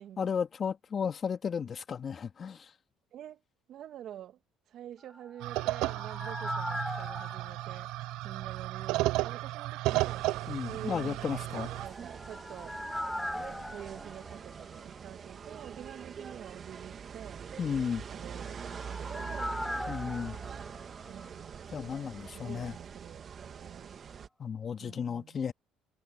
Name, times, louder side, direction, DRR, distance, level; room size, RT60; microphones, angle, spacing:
voice 1, 0.2-2.7 10.5-11.7 17.6-18.0 19.9-20.4 21.7-22.7 24.4-25.5, left 7 dB, 45° left, 1.9 m, -34 dB
voice 2, 3.1-3.4 3.7-4.4 4.7-7.9 8.2-10.3 10.6-11.4 11.8-12.8 13.2-17.5 18.1-19.6 21.1-21.6 22.4-24.0 24.8-25.4, right 11 dB, 60° right, 2.2 m, -47 dB
sound 1, 5.1-9.0 9.2-9.3 11.7-15.5 15.7-15.8 18.1-21.9 22.2-22.3, left 1 dB, 5° left, 4.8 m, -41 dB
sound 2, 5.4-11.9, right 18 dB, 75° right, 0.5 m, -33 dB
sound 3, 9.8-24.3, right 7 dB, 45° right, 2.5 m, -44 dB
supercardioid pair, 75°, 0 cm